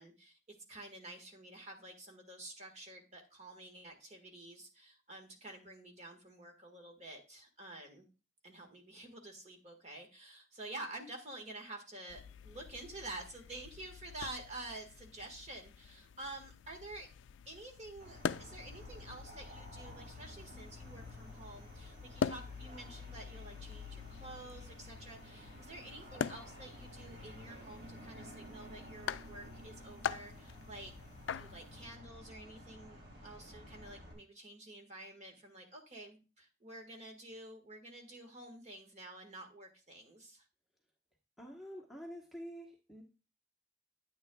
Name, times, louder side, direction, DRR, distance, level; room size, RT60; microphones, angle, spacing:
voice 1, 0.0-8.1 8.4-17.1 17.5-30.9 31.3-40.4, right 2 dB, 35° right, 2 dB, 1.7 m, -49 dB
sound 1, 12.1-31.9, left 7 dB, 80° left, 0.3 m, -44 dB
sound 2, 18.0-34.1, left 1 dB, 50° right, 3.8 m, -52 dB
sound 3, 25.0-29.9, right 1 dB, 75° right, 1.6 m, -68 dB
voice 2, 41.4-43.0, equal, ahead, -2 dB, 1.2 m, -47 dB
9.7 x 9.1 x 2.4 m, 0.32 s
head